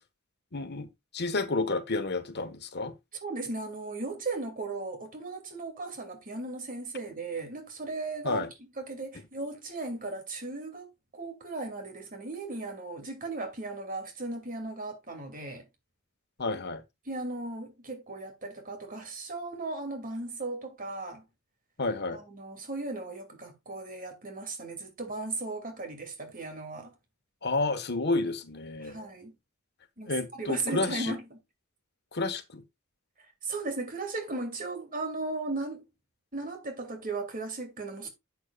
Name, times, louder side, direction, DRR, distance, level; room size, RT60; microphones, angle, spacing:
voice 1, 0.5-0.9 1.1-2.9 8.2-8.5 16.4-16.8 21.8-22.2 27.4-29.0 30.1-31.1 32.1-32.6, left 3 dB, 50° left, 1.4 m, -30 dB
voice 2, 3.2-8.5 8.8-15.6 17.0-21.2 22.1-26.9 28.8-29.3 30.0-31.4 33.4-35.8 36.3-38.1, right 2 dB, 40° right, 2.6 m, -36 dB
12.0 x 8.3 x 2.4 m
head